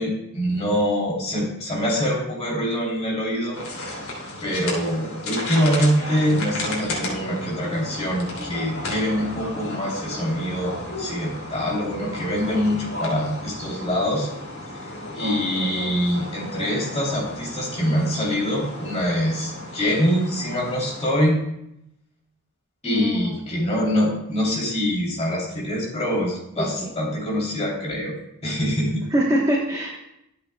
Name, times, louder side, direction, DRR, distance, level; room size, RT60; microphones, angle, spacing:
voice 1, 0.0-3.9 4.4-14.3 15.1-21.4 22.8-28.1 28.4-29.0, equal, 30° left, -4 dB, 3.0 m, -24 dB
sound 1, 3.5-21.1, left 1 dB, 80° left, 2.9 m, -34 dB
voice 2, 22.8-23.4 26.6-26.7 29.1-30.0, equal, 15° right, -2 dB, 1.1 m, -23 dB
13.0 x 8.0 x 2.2 m, 0.80 s
head